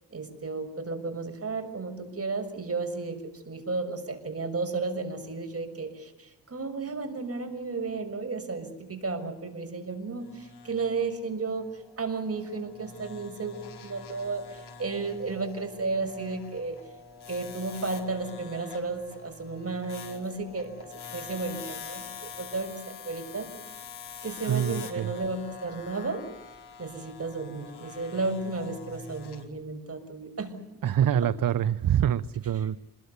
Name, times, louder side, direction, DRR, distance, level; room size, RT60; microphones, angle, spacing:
voice 1, 0.1-16.8 17.3-23.5 24.2-26.2 26.8-30.5, right 3 dB, 35° right, 6 dB, 6.4 m, -33 dB
sound 1, 10.2-29.4, left 6 dB, 75° left, 4.9 m, -45 dB
voice 2, 24.5-25.1 30.8-32.8, right 10 dB, 55° right, 15 dB, 0.8 m, -25 dB
28.0 x 21.5 x 8.3 m, 0.98 s
cardioid pair, 70°, 39 cm